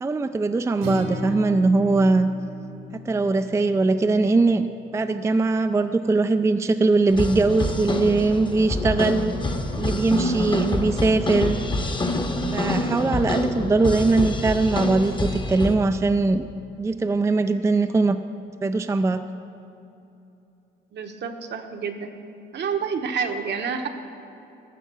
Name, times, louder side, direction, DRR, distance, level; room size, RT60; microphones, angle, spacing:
voice 1, 0.0-2.3 2.9-4.7 4.9-9.3 9.8-11.6 12.5-16.5 16.8-18.2 18.6-19.2, right 3 dB, 15° right, 9 dB, 0.4 m, -21 dB
Acoustic guitar, 0.8-5.0, left 1 dB, 90° right, 1.9 m, -35 dB
sound 1, 7.1-15.8, left 1 dB, 25° left, 1.0 m, -26 dB
voice 2, 20.9-22.1 22.5-23.9, right 6 dB, 60° right, 5 dB, 1.1 m, -28 dB
12.5 x 7.2 x 6.1 m, 2.9 s
cardioid pair, 90°, 20 cm